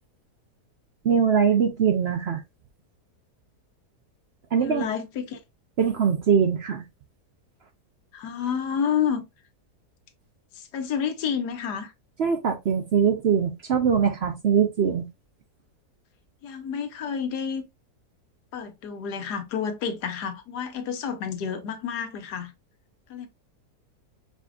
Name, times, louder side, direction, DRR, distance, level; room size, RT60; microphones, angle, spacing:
voice 1, 1.0-2.4 4.5-4.9 5.8-6.8 12.2-15.1, right 7 dB, 60° right, 0.7 m, -22 dB
voice 2, 4.6-5.4 8.1-9.2 10.5-11.9 16.4-17.6 18.5-22.5 23.1-23.3, left 7 dB, 85° left, 1.4 m, -29 dB
5.0 x 3.6 x 2.3 m
omnidirectional pair, 1.7 m